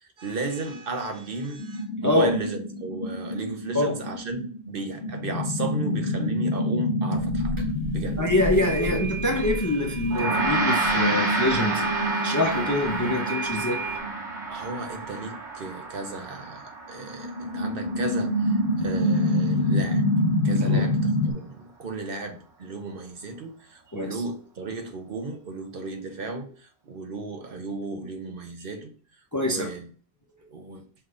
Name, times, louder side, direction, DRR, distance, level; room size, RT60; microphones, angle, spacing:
voice 1, 0.0-7.6 7.9-8.2 8.8-9.0 14.5-20.0 20.4-28.9 29.4-29.9 30.5-30.8, right 3 dB, 60° right, 0.9 m, -34 dB
sound 1, 1.6-14.4 15.0-15.1 17.0-21.3, left 1 dB, 55° left, 0.9 m, -27 dB
sound 2, 7.6-7.7 8.6-14.0, right 4 dB, 30° right, 0.9 m, -35 dB
voice 2, 8.2-12.0 12.2-13.8 20.6-20.8 23.9-24.2 29.3-29.7, left 2 dB, 25° left, 0.5 m, -25 dB
Gong, 10.1-19.6, right 2 dB, 45° right, 1.3 m, -30 dB
5.8 x 2.5 x 3.3 m
omnidirectional pair, 1.1 m